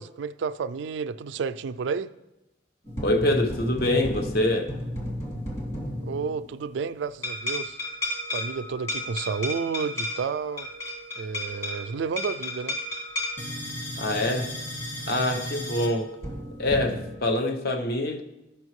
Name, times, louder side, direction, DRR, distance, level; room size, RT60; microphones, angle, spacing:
voice 1, 0.0-2.1 6.0-7.8 8.3-10.7 11.2-12.8, right 5 dB, 85° right, 0.3 m, -31 dB
sound 1, 2.9-6.5 7.2-17.2, left 1 dB, 35° left, 2.4 m, -33 dB
voice 2, 3.0-4.7 14.0-14.5 15.1-16.1 16.6-18.2, left 1 dB, 60° left, 0.8 m, -25 dB
13.5 x 5.7 x 3.1 m
head